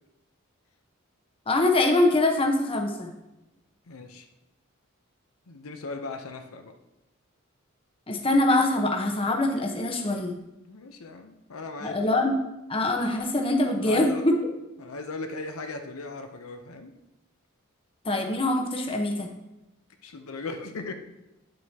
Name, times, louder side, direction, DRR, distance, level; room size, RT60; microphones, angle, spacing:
voice 1, 1.5-3.1 8.1-10.3 11.8-12.3 12.7-14.3 18.0-19.3, left 2 dB, 25° left, 3 dB, 1.0 m, -24 dB
voice 2, 3.9-4.3 5.5-6.7 10.7-12.1 13.8-14.3 14.8-16.9 20.0-20.9, left 3 dB, 75° left, 5 dB, 0.7 m, -38 dB
9.8 x 7.8 x 2.9 m, 0.97 s
head